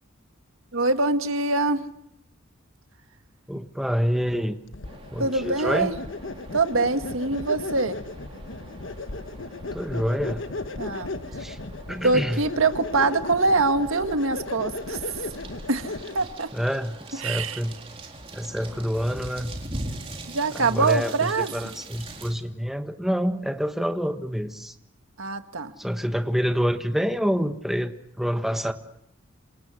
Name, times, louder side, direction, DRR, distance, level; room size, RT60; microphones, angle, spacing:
voice 1, 0.7-1.8 5.2-5.9 6.5-8.0 10.8-11.1 12.0-15.0 15.7-16.5 17.1-17.6 20.3-21.5 25.2-25.7, right 3 dB, 85° right, 8 dB, 1.7 m, -24 dB
voice 2, 3.5-4.6 5.1-5.9 9.7-10.4 11.4-11.6 11.9-12.4 16.5-17.7 18.3-19.5 20.5-24.7 25.8-28.7, equal, ahead, 7 dB, 1.3 m, -27 dB
sound 1, 4.7-16.4, left 2 dB, 70° left, 1.2 m, -36 dB
sound 2, 4.8-22.3, right 2 dB, 30° right, 4.1 m, -42 dB
28.0 x 27.5 x 6.4 m, 0.80 s
head